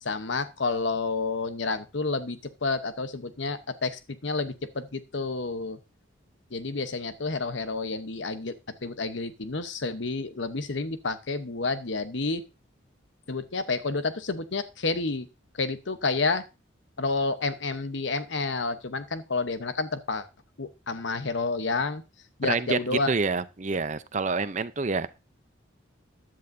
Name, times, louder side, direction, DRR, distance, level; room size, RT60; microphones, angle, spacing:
voice 1, 0.0-5.8 6.5-12.4 13.3-15.3 15.5-16.5 17.0-20.3 20.6-22.0 22.4-23.1, left 3 dB, 70° left, 11 dB, 1.0 m, -30 dB
voice 2, 22.5-22.8 23.1-25.1, right 4 dB, 40° right, 13 dB, 0.6 m, -27 dB
14.5 x 10.5 x 2.7 m, 0.28 s
head